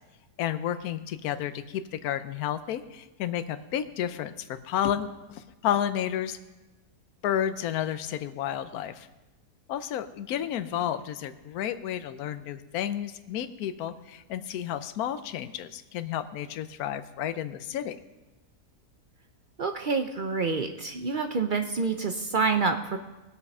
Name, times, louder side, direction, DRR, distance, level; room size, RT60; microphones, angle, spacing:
voice 1, 0.4-6.4 7.2-9.1 9.7-18.0, left 10 dB, 75° left, 11 dB, 1.2 m, -31 dB
voice 2, 19.6-23.0, right 4 dB, 55° right, 6 dB, 0.6 m, -27 dB
19.0 x 8.2 x 5.4 m, 1.1 s
omnidirectional pair, 1.6 m